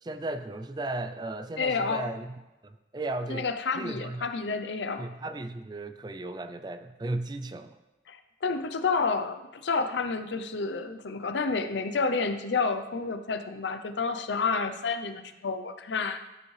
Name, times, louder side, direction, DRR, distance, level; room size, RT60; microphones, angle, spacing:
voice 1, 0.0-2.3 2.6-3.5 3.7-4.3 5.0-7.8, right 2 dB, 25° right, 9 dB, 0.4 m, -35 dB
voice 2, 1.6-2.1 3.3-5.1 8.1-16.2, left 4 dB, 85° left, 9 dB, 0.6 m, -30 dB
13.5 x 5.3 x 3.3 m, 1.0 s
head